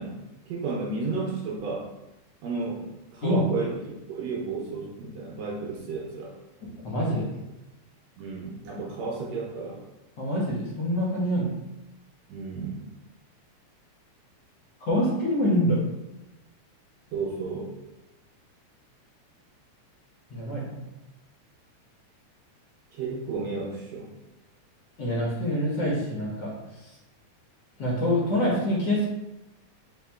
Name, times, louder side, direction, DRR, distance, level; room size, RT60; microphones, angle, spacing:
voice 1, 0.0-1.9 2.4-3.8 4.1-6.3 8.2-9.8 12.3-12.9 17.1-17.7 22.9-24.1, right 4 dB, 75° right, -3 dB, 1.6 m, -32 dB
voice 2, 6.6-7.4 10.2-11.5 14.8-15.8 20.3-20.8 25.0-26.9 27.8-29.1, equal, 70° left, -6 dB, 1.0 m, -26 dB
4.3 x 3.6 x 2.3 m, 0.96 s
omnidirectional pair, 3.4 m